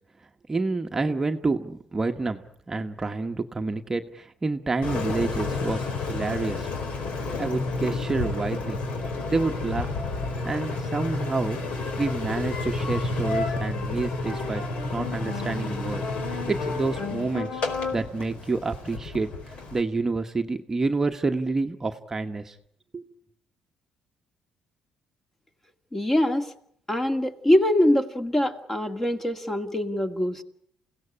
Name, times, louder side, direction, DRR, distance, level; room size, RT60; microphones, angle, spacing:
voice 1, 0.5-2.4 2.7-6.7 7.4-8.8 9.3-9.9 10.4-14.6 14.9-17.6 17.9-22.6 22.9-23.1, right 3 dB, 20° right, 5 dB, 1.2 m, -28 dB
Engine, 4.8-19.8, left 3 dB, 60° left, 4.7 m, -30 dB
voice 2, 25.9-26.5 26.9-30.4, left 1 dB, 15° left, 6 dB, 2.1 m, -23 dB
28.5 x 17.0 x 9.9 m, 0.71 s
cardioid pair, 135°, 2 cm